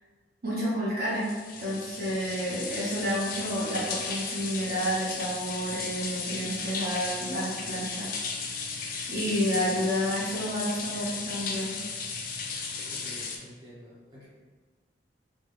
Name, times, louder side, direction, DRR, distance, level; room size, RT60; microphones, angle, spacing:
voice 1, 0.4-1.3 1.6-8.1 9.1-11.8, equal, 55° right, -8 dB, 1.3 m, -30 dB
sound 1, 1.1-13.4, left 4 dB, 50° left, 0.4 m, -35 dB
voice 2, 12.9-14.3, equal, 25° right, -11 dB, 0.8 m, -48 dB
3.4 x 2.3 x 3.1 m, 1.5 s
head